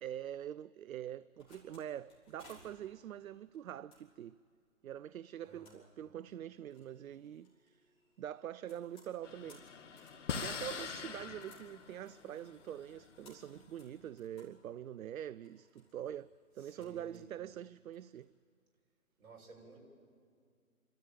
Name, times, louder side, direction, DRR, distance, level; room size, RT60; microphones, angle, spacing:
voice 1, 0.0-4.4 4.8-7.9 8.2-9.6 10.4-18.3, right 10 dB, 70° right, 0.5 m, -45 dB
sound 1, 1.3-18.3, left 2 dB, 10° left, 3.5 m, -66 dB
voice 2, 5.4-5.9 16.6-17.2 19.2-19.9, right 4 dB, 45° right, 7.1 m, -56 dB
sound 2, 9.2-13.9, left 6 dB, 55° left, 1.5 m, -44 dB
29.0 x 13.0 x 9.2 m
hypercardioid pair, 150°, 43 cm